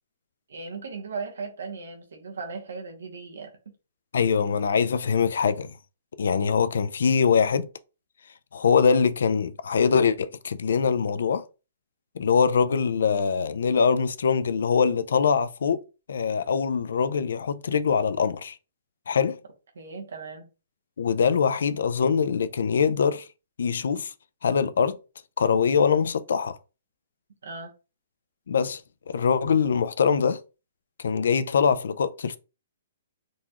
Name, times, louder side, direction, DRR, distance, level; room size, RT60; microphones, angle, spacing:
voice 1, 0.5-3.7 19.7-20.5 27.4-27.7, right 4 dB, 90° right, 1.1 m, -37 dB
voice 2, 4.1-5.7 6.2-7.7 8.5-11.4 12.2-15.8 16.1-18.6 19.1-19.4 21.0-23.3 23.6-24.1 24.4-25.0 25.4-26.6 28.5-28.8 29.1-30.4 31.0-32.4, left 6 dB, 75° left, 0.4 m, -23 dB
3.9 x 2.4 x 2.9 m
hypercardioid pair, 165°, 0 cm